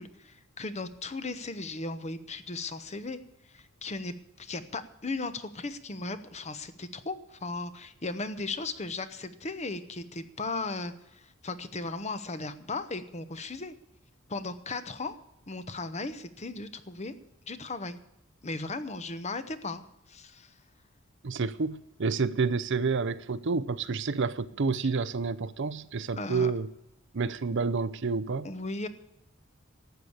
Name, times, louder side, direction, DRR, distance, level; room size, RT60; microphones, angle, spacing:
voice 1, 0.0-3.2 3.5-13.7 14.3-15.1 15.5-17.1 17.5-18.0 18.4-19.8 20.1-20.5 26.2-26.5 28.4-28.9, left 3 dB, 30° left, 1.0 m, -36 dB
voice 2, 21.2-26.7 27.1-28.5, right 4 dB, 60° right, 0.6 m, -29 dB
12.5 x 8.2 x 8.6 m
head